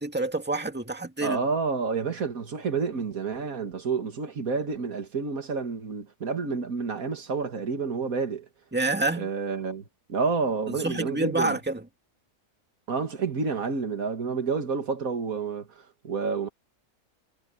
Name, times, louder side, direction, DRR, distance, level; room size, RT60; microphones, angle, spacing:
voice 1, 0.0-1.4 8.7-9.3 10.8-11.8, right 2 dB, 5° right, 2.1 m, -27 dB
voice 2, 1.2-8.5 9.2-11.6 12.9-15.7 16.0-16.5, right 5 dB, 85° right, 2.4 m, -29 dB
omnidirectional pair, 1.4 m